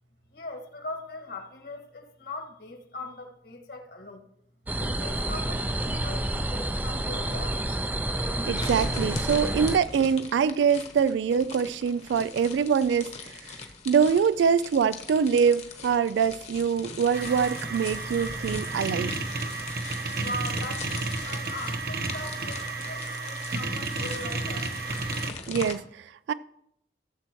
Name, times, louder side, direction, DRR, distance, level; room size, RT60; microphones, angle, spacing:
voice 1, 0.3-4.3 4.8-7.6 20.1-24.7, left 1 dB, 60° left, 1.8 m, -40 dB
sound 1, 4.7-9.8, right 1 dB, 10° right, 0.5 m, -29 dB
voice 2, 8.5-13.6 13.9-19.1 25.5-26.3, right 6 dB, 80° right, 0.3 m, -24 dB
sound 2, 8.6-25.7, left 3 dB, 35° left, 1.1 m, -41 dB
sound 3, 17.1-25.3, right 3 dB, 55° right, 1.0 m, -32 dB
16.5 x 7.5 x 3.1 m
head